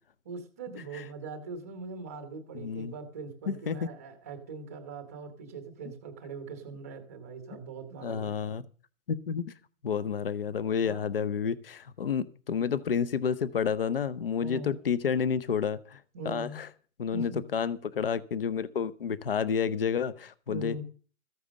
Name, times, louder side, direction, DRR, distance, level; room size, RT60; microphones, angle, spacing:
voice 1, 0.2-8.4 10.0-10.1 10.8-11.1 14.4-14.8 16.1-16.6 17.1-17.4 20.5-20.8, right 4 dB, 10° right, 0.9 m, -41 dB
voice 2, 2.5-2.9 3.5-3.8 8.0-8.6 9.1-9.4 9.8-16.7 17.0-20.8, left 7 dB, 40° left, 0.8 m, -30 dB
14.0 x 9.3 x 6.2 m
hypercardioid pair, 170°, 42 cm